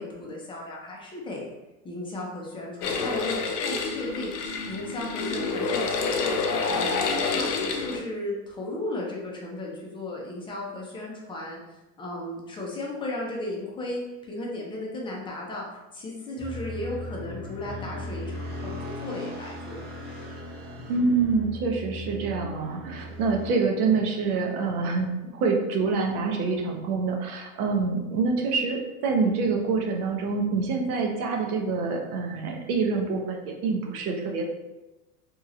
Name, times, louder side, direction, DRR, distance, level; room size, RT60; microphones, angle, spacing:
voice 1, 0.0-1.5 1.8-11.6 12.0-19.8, left 1 dB, 10° left, -2 dB, 0.4 m, -35 dB
sound 1, 2.8-8.0, left 4 dB, 85° left, 0.6 m, -28 dB
sound 2, 16.4-23.5, left 1 dB, 20° right, 0.7 m, -38 dB
voice 2, 20.9-34.5, right 4 dB, 75° right, 1 dB, 0.8 m, -26 dB
2.9 x 2.8 x 2.4 m, 1.0 s
supercardioid pair, 125°, 45 cm